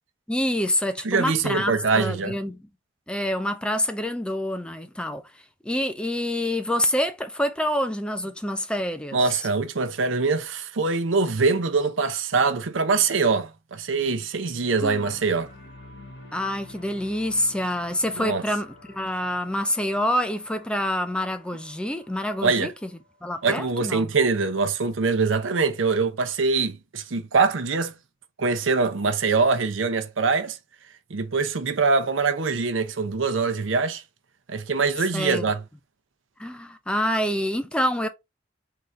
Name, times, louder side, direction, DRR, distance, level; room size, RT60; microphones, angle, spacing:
voice 1, 0.3-2.6 3.1-5.2 5.6-9.2 14.8-15.1 16.3-22.7 23.2-24.1 35.1-35.5 36.4-38.1, left 1 dB, 5° left, 0.4 m, -27 dB
voice 2, 1.0-2.3 9.1-15.5 18.2-18.4 22.4-22.7 23.4-27.9 28.4-30.6 31.1-34.0 34.5-35.6, right 4 dB, 80° right, 0.7 m, -23 dB
sound 1, 14.9-23.1, left 2 dB, 65° left, 1.9 m, -48 dB
4.1 x 3.8 x 3.2 m
head